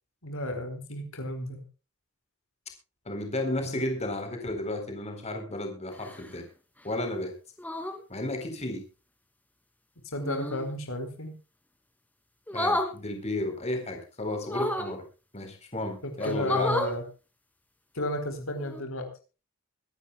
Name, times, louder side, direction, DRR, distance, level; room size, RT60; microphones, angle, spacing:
voice 1, 0.2-1.6 3.7-3.8 10.1-11.4 16.0-17.0 17.9-19.1, left 1 dB, 80° left, 7 dB, 4.4 m, -32 dB
voice 2, 3.1-6.5 6.8-7.3 8.1-8.8 12.5-15.0 15.3-16.7, left 1 dB, 30° left, 5 dB, 4.1 m, -33 dB
sound 1, 5.9-6.4 7.6-8.0 10.2-10.7 12.5-12.9 14.4-15.0 15.7-15.8 16.2-16.9 18.6-18.8, left 1 dB, 10° left, 2.8 m, -31 dB
24.5 x 11.5 x 2.3 m, 0.33 s
head